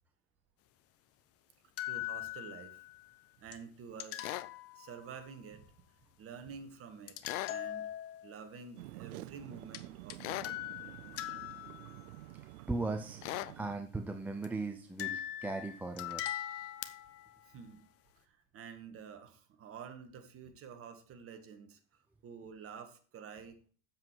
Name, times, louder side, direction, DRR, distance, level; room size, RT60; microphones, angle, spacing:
sound 1, 1.8-3.0 3.5-3.6 4.0-5.2 7.1-8.4 9.7-9.8 10.1-12.2 14.4-14.5 15.0-17.4, left 13 dB, 35° left, 0.8 m, -41 dB
voice 1, 1.9-2.8 3.4-4.4 4.8-5.7 6.2-7.2 7.5-7.9 8.2-10.4 17.5-17.8 18.2-23.6, right 6 dB, 30° right, 7 dB, 1.7 m, -49 dB
sound 2, 4.2-4.5 7.2-7.6 10.2-10.5 13.2-13.5, left 16 dB, 75° left, 0.7 m, -38 dB
sound 3, 8.7-13.8, right 16 dB, 80° right, 0.6 m, -49 dB
voice 2, 12.7-13.3 13.6-16.3, right 3 dB, 5° right, 5 dB, 0.4 m, -38 dB
7.7 x 7.6 x 4.6 m, 0.41 s
supercardioid pair, 125°, 42 cm